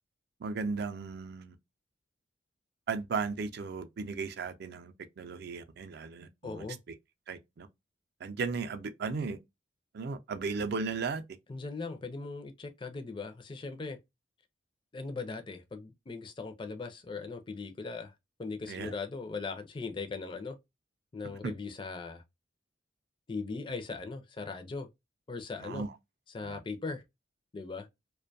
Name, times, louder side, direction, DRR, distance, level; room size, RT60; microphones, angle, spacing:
voice 1, 0.4-1.6 2.9-6.6 7.3-7.7 8.2-9.4 9.9-11.2 18.7-18.9 21.4-21.5 25.6-25.9 26.4-26.6, right 4 dB, 55° right, 0.4 m, -36 dB
voice 2, 6.4-6.8 11.5-14.0 14.9-18.1 18.4-20.6 21.1-22.2 23.3-24.9 25.3-25.9 26.3-27.0 27.5-27.9, left 4 dB, 25° left, 0.4 m, -39 dB
2.5 x 2.2 x 2.6 m
head